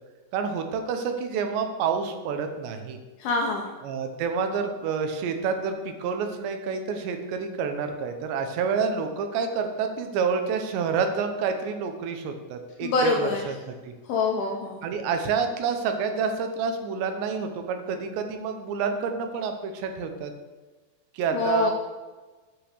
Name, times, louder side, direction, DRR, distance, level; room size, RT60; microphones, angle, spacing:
voice 1, 0.3-3.0 3.8-13.9 14.8-20.3 21.1-21.7, right 5 dB, 80° right, 6 dB, 3.1 m, -28 dB
voice 2, 3.2-3.7 12.8-13.5 14.1-14.8 21.3-21.7, left 3 dB, 80° left, 2 dB, 2.2 m, -25 dB
9.0 x 5.1 x 6.5 m, 1.3 s
omnidirectional pair, 5.1 m